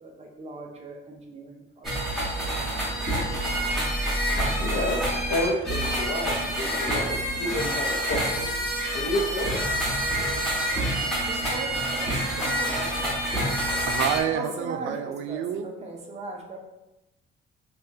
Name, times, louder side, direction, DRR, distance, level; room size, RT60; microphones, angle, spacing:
voice 1, 0.0-2.1 6.6-7.1 11.3-12.9 14.3-16.6, right 3 dB, 35° right, 2 dB, 0.6 m, -39 dB
sound 1, 1.8-14.2, equal, ahead, 1.3 m, -27 dB
voice 2, 4.3-5.0 5.3-8.6 8.9-9.6, left 1 dB, 85° left, 1 dB, 0.8 m, -30 dB
voice 3, 13.9-15.7, right 8 dB, 85° right, 7 dB, 0.4 m, -28 dB
5.4 x 2.3 x 2.7 m, 0.97 s
cardioid pair, 160°, 20 cm